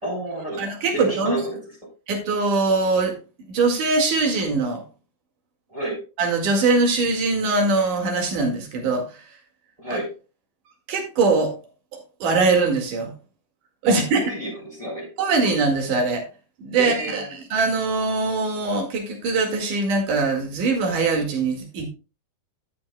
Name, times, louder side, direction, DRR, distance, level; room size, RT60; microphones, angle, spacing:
voice 1, 0.0-1.6 5.7-6.0 9.8-10.1 13.9-15.1 16.8-17.3, right 2 dB, 10° right, -2 dB, 3.3 m, -30 dB
voice 2, 0.6-1.4 2.1-3.1 3.5-4.8 6.2-9.0 9.9-10.0 10.9-11.5 12.2-13.1 13.8-14.2 15.2-16.2 16.6-17.2 17.5-21.9, right 3 dB, 55° right, 3 dB, 3.1 m, -22 dB
13.5 x 8.0 x 2.2 m, 0.31 s
omnidirectional pair, 5.1 m